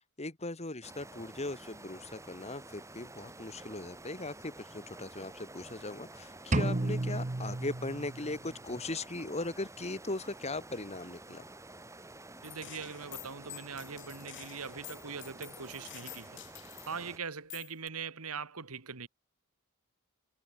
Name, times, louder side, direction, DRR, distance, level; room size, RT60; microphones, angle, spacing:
voice 1, 0.2-11.5, left 2 dB, 30° left, 2.1 m, -39 dB
sound 1, 0.8-17.2, right 2 dB, 15° right, 3.9 m, -50 dB
sound 2, 6.5-8.5, right 2 dB, 35° right, 0.9 m, -32 dB
Gunshot gunfire, 12.4-17.1 17.5-17.9, left 16 dB, 55° left, 2.1 m, -49 dB
voice 2, 12.4-16.5 16.8-19.1, right 5 dB, 75° right, 2.0 m, -42 dB
head